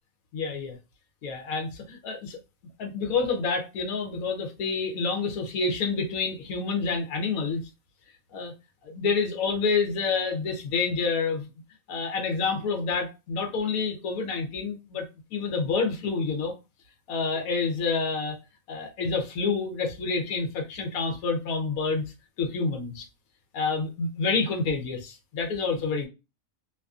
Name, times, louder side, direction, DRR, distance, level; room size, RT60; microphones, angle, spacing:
voice 1, 0.3-0.8 1.2-2.4 2.8-7.6 8.3-8.5 8.8-11.5 11.9-15.0 15.3-16.5 17.1-18.4 18.7-22.0 22.4-23.1 23.5-26.1, left 4 dB, 90° left, 1.1 m, -28 dB
2.6 x 2.5 x 2.3 m
omnidirectional pair, 1.4 m